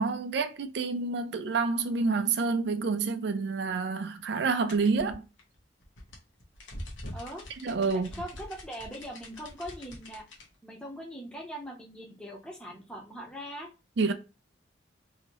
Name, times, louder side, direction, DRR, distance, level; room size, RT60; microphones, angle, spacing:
voice 1, 0.0-5.2 7.6-8.1 14.0-14.1, right 4 dB, 60° right, 0.4 m, -28 dB
sound 1, 4.7-10.5, left 1 dB, 90° left, 0.9 m, -44 dB
voice 2, 7.1-7.4 8.1-10.2 10.6-13.7, equal, 5° left, 0.7 m, -41 dB
2.7 x 2.7 x 2.9 m
head